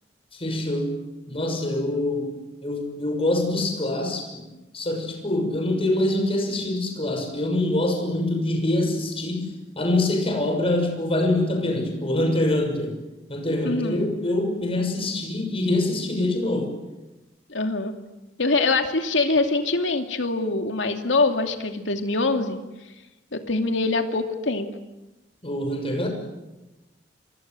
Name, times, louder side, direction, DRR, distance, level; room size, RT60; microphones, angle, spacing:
voice 1, 0.3-1.0 1.3-4.4 4.7-12.9 13.3-16.7 25.4-26.1, left 1 dB, 30° left, 4 dB, 6.4 m, -25 dB
voice 2, 13.6-14.1 17.5-17.9 18.4-22.6 23.3-24.7, left 3 dB, 80° left, 5 dB, 2.7 m, -24 dB
29.5 x 25.5 x 7.8 m, 1.0 s
head